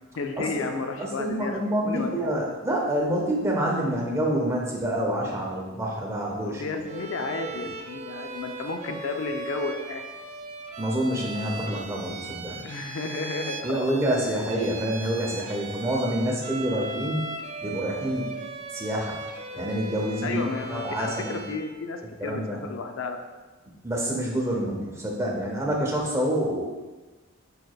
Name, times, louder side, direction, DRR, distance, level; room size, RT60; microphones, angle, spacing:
voice 1, 0.2-2.3 6.4-10.0 12.6-14.0 20.2-23.2, left 4 dB, 75° left, 5 dB, 0.4 m, -32 dB
voice 2, 1.0-6.6 7.6-7.7 10.8-12.6 13.6-17.2 17.6-18.3 18.7-19.2 19.5-20.4 20.7-21.4 22.2-22.6 23.8-26.7, right 1 dB, 15° right, -2 dB, 0.8 m, -27 dB
Bowed string instrument, 6.9-21.7, right 3 dB, 35° right, 0.4 m, -38 dB
4.8 x 4.6 x 2.4 m, 1.2 s
head